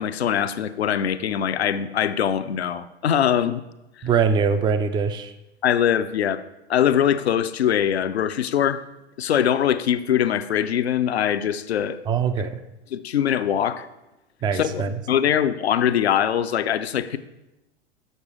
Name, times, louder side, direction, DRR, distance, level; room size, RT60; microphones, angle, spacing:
voice 1, 0.0-3.6 5.6-6.4 6.7-8.8 9.2-12.0 12.9-13.9 14.5-14.8 15.1-17.2, left 9 dB, 70° left, 0.6 m, -22 dB
voice 2, 4.0-5.3 12.1-12.6 14.4-14.9, right 6 dB, 15° right, 0.4 m, -22 dB
6.6 x 6.6 x 4.8 m
figure-of-eight pair, 90°, 33 cm